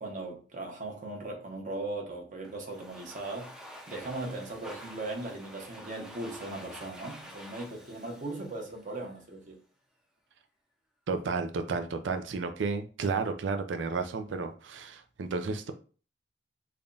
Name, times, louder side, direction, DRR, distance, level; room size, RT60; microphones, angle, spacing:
voice 1, 0.0-3.5 3.9-9.6, right 2 dB, 45° right, 0.9 m, -38 dB
Domestic sounds home sounds, 2.4-9.3, equal, 5° right, 0.5 m, -49 dB
voice 2, 11.1-15.7, right 4 dB, 75° right, 0.5 m, -32 dB
3.4 x 2.3 x 3.8 m
head